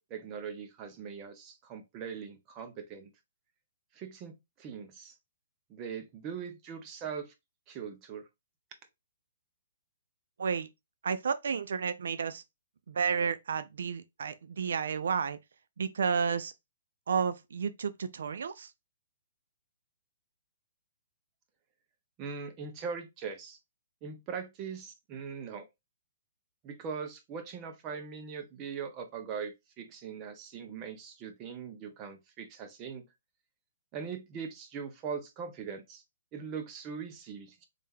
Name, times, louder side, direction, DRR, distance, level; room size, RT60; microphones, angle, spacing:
voice 1, 0.0-3.1 3.9-5.1 5.7-7.3 7.7-8.3 22.2-23.6 24.0-25.7 26.6-33.0 33.9-36.0 36.3-37.7, right 6 dB, 25° right, 0.7 m, -41 dB
voice 2, 11.0-12.4 12.9-15.4 15.8-16.5 17.1-18.7, right 6 dB, 75° right, 0.4 m, -31 dB
3.3 x 2.7 x 3.6 m
hypercardioid pair, 155°, 0 cm